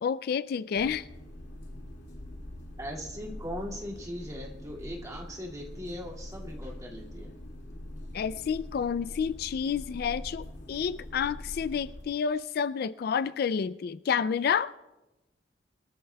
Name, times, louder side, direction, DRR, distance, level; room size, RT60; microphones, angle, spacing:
voice 1, 0.0-1.0 8.1-14.7, left 7 dB, 60° left, 0.3 m, -29 dB
sound 1, 0.7-12.0, left 1 dB, 90° left, 2.2 m, -43 dB
voice 2, 2.8-7.4, equal, 20° right, 2.2 m, -39 dB
22.5 x 13.5 x 2.3 m
head